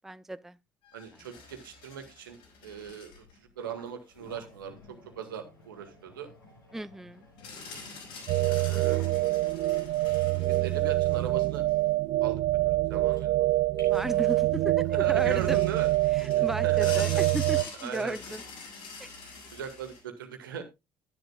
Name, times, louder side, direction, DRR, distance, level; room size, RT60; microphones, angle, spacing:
voice 1, 0.0-0.6 6.7-7.3 13.9-15.6 16.1-18.4 19.0-19.1, right 1 dB, 5° right, 0.5 m, -35 dB
sound 1, 0.8-3.4 4.0-4.1 7.4-11.8 13.3-13.4 13.6-14.7 15.1-20.0, left 4 dB, 65° left, 5.1 m, -45 dB
voice 2, 0.9-3.2 3.6-4.8 5.1-6.3 8.4-9.0 10.5-11.6 12.2-12.4 12.6-13.5 14.9-15.9 16.3-17.1 17.8-18.2 19.5-20.6, right 8 dB, 75° right, 1.7 m, -39 dB
sound 2, 3.6-14.6, left 2 dB, 90° left, 3.7 m, -55 dB
sound 3, 8.3-17.6, right 17 dB, 55° right, 0.5 m, -25 dB
12.0 x 10.5 x 2.3 m
figure-of-eight pair, 55°, 11 cm